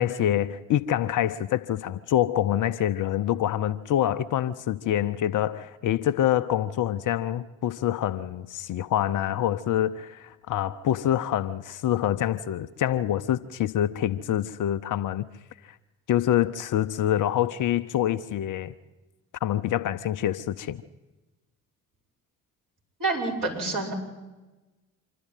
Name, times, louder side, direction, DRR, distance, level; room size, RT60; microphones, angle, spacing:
voice 1, 0.0-15.3 16.1-18.7 19.4-20.8, left 11 dB, 45° left, 0.8 m, -26 dB
voice 2, 23.0-23.9, right 3 dB, 50° right, 6.9 m, -27 dB
26.0 x 12.5 x 9.4 m
figure-of-eight pair, 45°, 43 cm